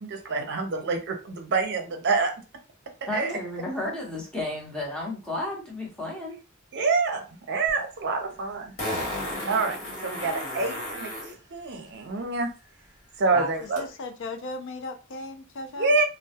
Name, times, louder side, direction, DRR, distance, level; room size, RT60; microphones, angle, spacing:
voice 1, 0.0-2.3 3.1-3.3 6.7-8.7 9.5-9.8 10.0-12.5 13.2-13.8 15.8-16.0, right 3 dB, 55° right, 0.6 m, -27 dB
voice 2, 3.1-6.4 13.3-13.5, left 1 dB, 5° left, 0.8 m, -32 dB
Fart, 7.7-7.8 8.8-11.3 13.8-13.9, left 1 dB, 45° left, 1.2 m, -33 dB
voice 3, 13.8-15.9, left 2 dB, 65° left, 0.4 m, -37 dB
2.2 x 2.0 x 2.7 m
head